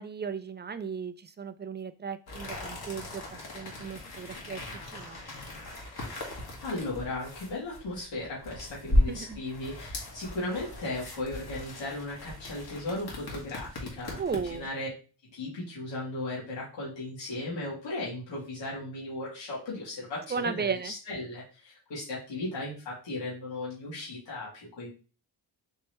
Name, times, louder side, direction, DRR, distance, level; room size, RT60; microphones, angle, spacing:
voice 1, 0.0-3.2 3.5-4.6 4.9-5.2 9.1-9.4 14.2-14.7 20.3-20.9, right 6 dB, 25° right, 13 dB, 0.3 m, -35 dB
sound 1, 2.3-14.7, left 1 dB, 55° left, 1.7 m, -35 dB
voice 2, 6.6-14.2 14.5-14.9 15.3-24.9, left 2 dB, 85° left, -8 dB, 2.4 m, -36 dB
4.5 x 3.0 x 3.1 m, 0.35 s
cardioid pair, 60°, 44 cm